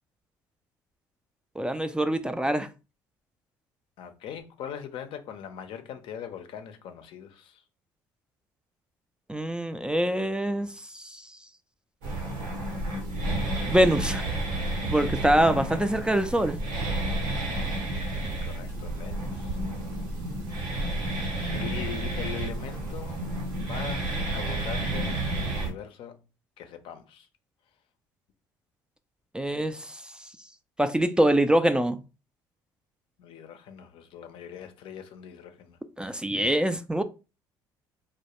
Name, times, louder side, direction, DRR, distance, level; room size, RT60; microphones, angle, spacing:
voice 1, 1.6-2.7 9.3-10.7 10.9-11.2 13.7-14.3 14.9-16.6 29.3-30.0 30.8-32.0 36.0-37.0, right 1 dB, 10° right, 0.3 m, -24 dB
voice 2, 4.0-7.6 15.7-15.9 18.2-19.6 21.5-23.2 23.6-26.2 26.6-27.3 33.2-35.8, left 8 dB, 65° left, 0.5 m, -41 dB
sound 1, 12.0-25.7, right 2 dB, 85° right, 0.9 m, -31 dB
2.2 x 2.1 x 2.9 m
hypercardioid pair, 65°, 10 cm